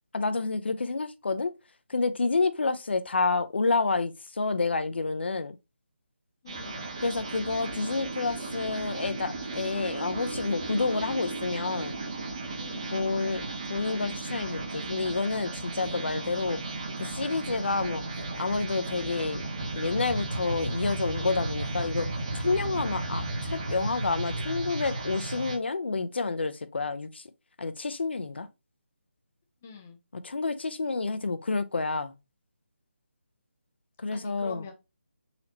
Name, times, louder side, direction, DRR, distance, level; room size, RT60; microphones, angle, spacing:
voice 1, 0.1-1.5 1.9-5.6 7.0-12.0 12.9-13.4 13.7-16.6 17.0-18.0 18.4-19.5 19.7-22.1 22.3-27.2 27.6-28.5 30.1-32.2 34.0-34.7, left 3 dB, 60° left, 0.5 m, -29 dB
voice 2, 6.4-6.9 12.6-13.0 29.6-30.0 34.1-34.7, left 6 dB, 10° left, 0.3 m, -45 dB
sound 1, 6.5-25.6, right 2 dB, 25° right, 0.8 m, -34 dB
4.2 x 2.7 x 2.8 m
hypercardioid pair, 175°, 7 cm